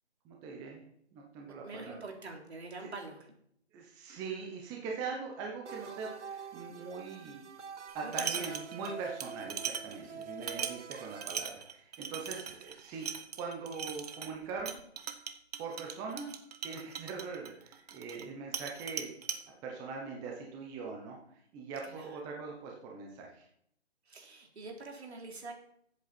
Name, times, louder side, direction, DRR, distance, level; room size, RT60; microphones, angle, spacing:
voice 1, 0.2-0.8 1.1-2.0 2.8-2.9 3.7-7.4 7.9-13.1 13.4-14.8 15.6-16.3 16.6-19.1 19.6-21.2 21.5-23.4, right 4 dB, 10° right, 0 dB, 0.9 m, -41 dB
voice 2, 1.6-3.2 8.0-8.6 10.0-10.3 12.3-12.4 12.9-13.1 21.9-22.2 24.1-25.5, right 3 dB, 65° right, 2 dB, 3.3 m, -45 dB
sound 1, 5.7-11.3, right 6 dB, 85° right, 0.9 m, -46 dB
sound 2, 7.9-8.9 9.2-18.3 18.5-19.4, right 7 dB, 35° right, 0.9 m, -40 dB
14.0 x 8.1 x 4.3 m, 0.71 s
figure-of-eight pair, 150°, 34 cm